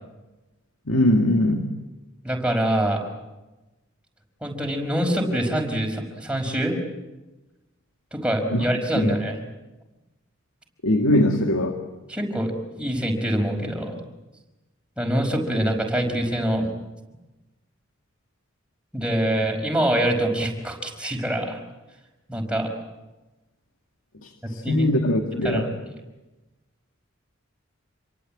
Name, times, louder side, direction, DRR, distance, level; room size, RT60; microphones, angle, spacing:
voice 1, 0.9-1.7 8.5-8.6 8.9-9.1 10.8-11.8 24.2-25.7, left 1 dB, 80° left, 4 dB, 2.1 m, -21 dB
voice 2, 2.2-3.0 4.4-6.8 8.1-9.4 12.1-12.5 12.8-14.0 15.0-16.7 18.9-21.6 22.3-22.7 24.4-24.9 25.4-25.7, right 1 dB, 5° right, 2 dB, 5.3 m, -25 dB
28.0 x 23.5 x 8.8 m, 1.1 s
head